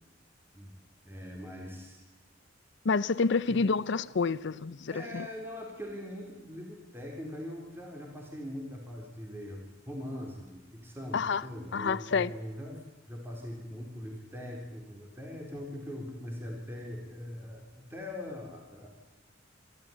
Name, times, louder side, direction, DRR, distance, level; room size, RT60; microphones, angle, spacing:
voice 1, 1.0-2.0 3.5-3.6 4.9-18.9, left 1 dB, 10° right, 0 dB, 3.8 m, -41 dB
voice 2, 2.8-5.3 11.1-11.4 11.7-12.3, left 4 dB, 65° left, 18 dB, 0.6 m, -28 dB
24.5 x 14.0 x 8.8 m, 1.2 s
head